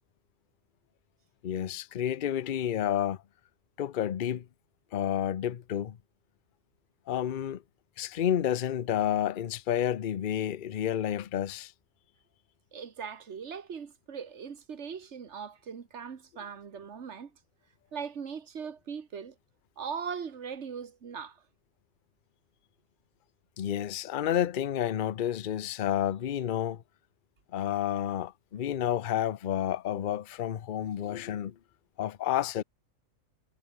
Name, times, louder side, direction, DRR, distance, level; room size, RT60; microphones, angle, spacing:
voice 1, 1.4-3.2 3.8-4.4 4.9-6.0 7.1-7.6 8.0-11.7 23.6-26.8 27.5-31.5 32.0-32.6, left 10 dB, 45° left, 0.7 m, -30 dB
voice 2, 12.7-17.3 17.9-19.3 19.8-21.4, right 6 dB, 60° right, 1.6 m, -40 dB
omnidirectional pair, 1.4 m